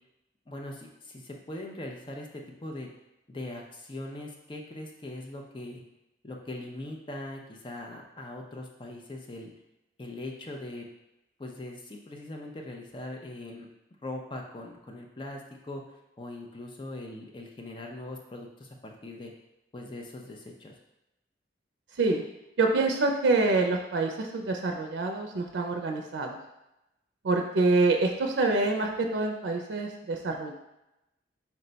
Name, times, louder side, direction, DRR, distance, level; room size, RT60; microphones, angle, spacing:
voice 1, 0.5-2.9 3.3-5.8 6.2-9.5 10.0-10.9 11.4-13.7 14.0-15.8 16.2-19.3 19.7-20.7, left 1 dB, 25° left, 1 dB, 0.4 m, -41 dB
voice 2, 22.6-26.4 27.2-30.5, right 3 dB, 85° right, 3 dB, 0.4 m, -26 dB
4.4 x 2.1 x 3.9 m, 0.92 s
head